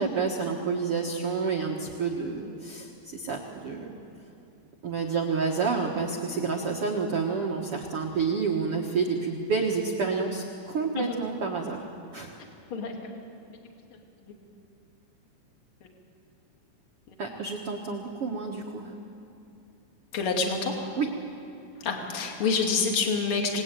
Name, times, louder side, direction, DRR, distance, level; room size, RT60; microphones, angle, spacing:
voice 1, 0.0-4.0 4.8-11.8 12.1-12.4 17.2-18.9 21.0-21.1, right 5 dB, 85° right, 0 dB, 1.2 m, -29 dB
voice 2, 12.7-13.1 14.2-14.3 15.8-15.9 17.1-17.2 20.1-21.0 21.8-23.6, left 4 dB, 35° left, 1 dB, 2.8 m, -28 dB
28.0 x 19.5 x 9.1 m, 2.7 s
omnidirectional pair, 5.2 m